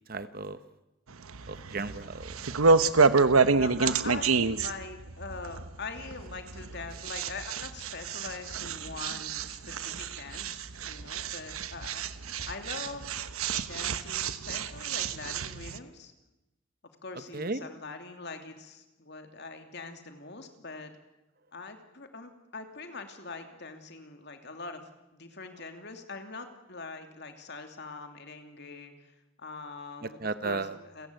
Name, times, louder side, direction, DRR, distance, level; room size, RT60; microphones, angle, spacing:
voice 1, 0.1-0.6 1.5-2.6 17.3-17.6 30.0-30.7, right 3 dB, 45° right, 13 dB, 1.0 m, -35 dB
sound 1, 1.1-15.8, right 4 dB, 80° right, 1.0 m, -28 dB
voice 2, 3.6-13.1 13.7-16.1 17.0-20.9 21.5-24.8 25.1-31.1, left 3 dB, 50° left, 6 dB, 2.8 m, -43 dB
29.5 x 15.5 x 9.3 m, 0.99 s
head